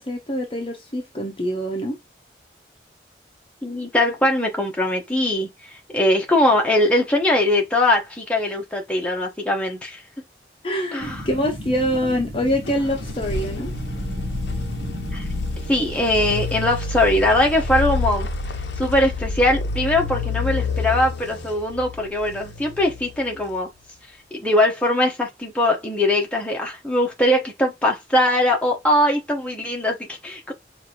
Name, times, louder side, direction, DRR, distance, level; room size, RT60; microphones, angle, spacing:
voice 1, 0.0-2.0 10.6-13.7, equal, 30° left, 0.8 m, -25 dB
voice 2, 3.6-10.0 10.9-11.3 15.1-15.3 15.7-18.3 18.8-23.7 24.4-30.5, left 1 dB, 5° left, 1.0 m, -21 dB
sound 1, 11.0-16.6, equal, 60° right, 1.2 m, -34 dB
sound 2, 12.7-23.5, left 3 dB, 80° left, 0.7 m, -28 dB
5.8 x 2.7 x 2.9 m
head